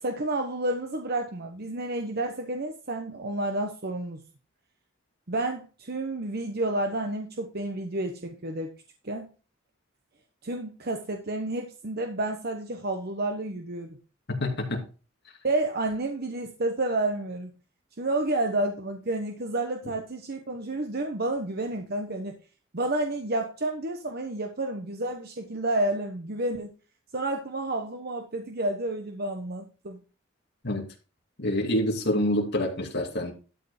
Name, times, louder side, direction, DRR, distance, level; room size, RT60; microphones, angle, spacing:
voice 1, 0.0-4.2 5.3-8.7 9.0-9.3 10.4-14.0 15.4-17.5 18.0-22.4 22.7-26.7 27.1-30.0, right 2 dB, 50° right, 4 dB, 1.1 m, -30 dB
voice 2, 14.4-14.8 30.6-30.9 31.4-33.3, left 1 dB, 55° left, 2 dB, 2.5 m, -27 dB
12.5 x 5.0 x 4.9 m, 0.34 s
head